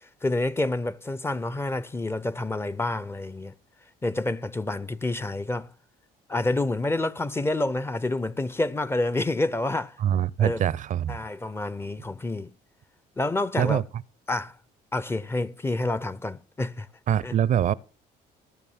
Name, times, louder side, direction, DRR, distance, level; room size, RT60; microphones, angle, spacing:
voice 1, 0.0-3.5 4.0-5.7 6.3-10.0 10.4-10.6 11.1-12.5 13.2-13.8 14.3-14.6 14.9-16.9 17.2-17.3, left 2 dB, 15° left, 0.5 m, -28 dB
voice 2, 10.0-11.2 13.6-13.8 17.1-17.7, right 10 dB, 50° right, 0.5 m, -24 dB
15.5 x 6.5 x 7.2 m
cardioid pair, 110°, 17 cm